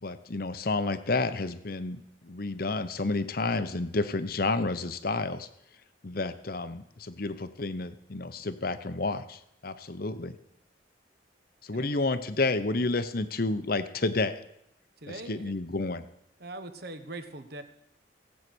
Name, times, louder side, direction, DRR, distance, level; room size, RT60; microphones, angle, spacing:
voice 1, 0.0-5.5 6.0-10.4 11.6-14.4 15.1-16.0, left 3 dB, 50° left, 12 dB, 0.9 m, -30 dB
voice 2, 15.0-15.5 16.4-17.6, right 2 dB, 55° right, 9 dB, 1.2 m, -41 dB
16.5 x 8.4 x 6.2 m, 0.76 s
head